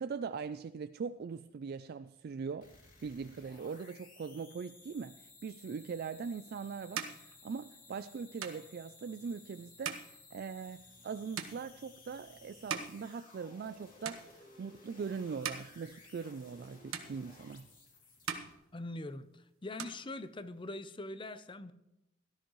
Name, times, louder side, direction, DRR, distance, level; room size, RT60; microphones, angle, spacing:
voice 1, 0.0-2.7 3.0-17.7, right 5 dB, 50° right, 0.3 m, -41 dB
sound 1, 2.6-18.5, left 3 dB, 40° left, 2.7 m, -58 dB
sound 2, 6.1-13.8 14.0-14.7 15.2-16.6 16.9-17.8 18.1-19.3 19.6-20.7, right 7 dB, 90° right, 1.2 m, -44 dB
voice 2, 18.7-21.7, left 2 dB, 25° left, 0.6 m, -43 dB
17.0 x 13.0 x 3.1 m
head